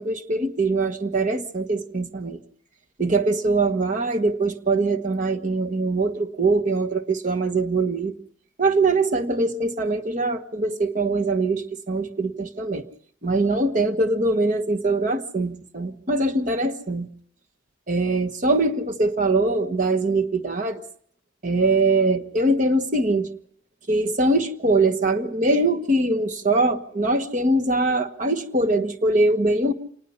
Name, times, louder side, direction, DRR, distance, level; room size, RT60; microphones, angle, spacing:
voice 1, 0.0-2.4 3.0-8.1 8.6-12.8 13.2-17.1 17.9-20.8 21.4-23.3 23.9-29.7, right 2 dB, 40° right, 6 dB, 1.3 m, -22 dB
26.5 x 19.5 x 5.6 m, 0.63 s
head